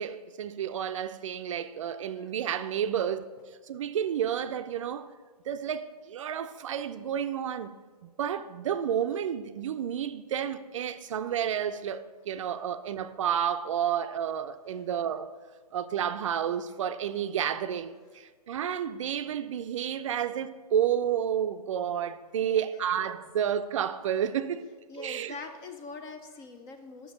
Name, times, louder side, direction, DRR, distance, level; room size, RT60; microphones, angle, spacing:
voice 1, 0.0-3.3 3.7-5.1 5.5-7.7 8.2-15.3 15.7-24.7 25.0-25.3, right 9 dB, 50° right, 0.4 m, -31 dB
voice 2, 22.4-22.9 24.9-27.1, left 4 dB, 15° left, 0.4 m, -44 dB
6.0 x 5.0 x 6.4 m
hypercardioid pair, 135°, 20 cm